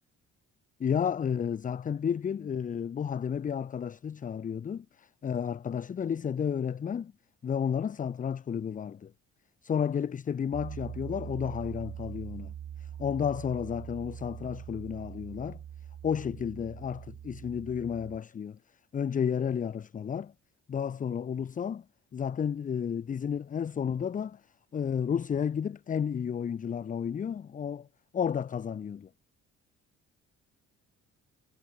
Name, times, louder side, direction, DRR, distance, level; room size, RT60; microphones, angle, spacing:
voice 1, 0.8-7.1 7.4-9.1 9.6-12.5 12.8-15.6 16.0-18.6 18.9-20.3 20.7-21.8 22.1-24.4 24.7-27.9 28.1-29.1, left 7 dB, 30° left, 0.4 m, -32 dB
Piano, 10.5-18.2, right 10 dB, 55° right, 1.6 m, -43 dB
cardioid pair, 90°, 30 cm